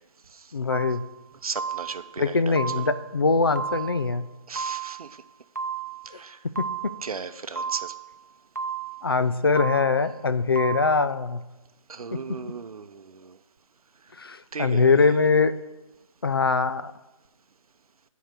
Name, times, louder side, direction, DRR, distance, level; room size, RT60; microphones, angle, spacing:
voice 1, 0.5-1.0 2.2-4.3 6.6-6.7 9.0-11.4 12.1-12.2 14.2-15.5 16.2-16.9, left 4 dB, 40° left, 13 dB, 0.4 m, -22 dB
sound 1, 0.7-1.1 1.5-2.1 2.5-3.1 3.5-4.1 4.5-5.1 5.5-6.1 6.5-7.1 7.5-8.1 8.5-9.1 9.5-10.1 10.5-11.1, right 6 dB, 30° right, 0.4 m, -33 dB
voice 2, 1.4-2.6 4.5-5.1 6.0-6.4 7.0-7.9 11.9-13.4 14.5-15.2, right 5 dB, 85° right, 12 dB, 0.6 m, -36 dB
6.5 x 4.7 x 6.7 m, 1.0 s
hypercardioid pair, 175°, 18 cm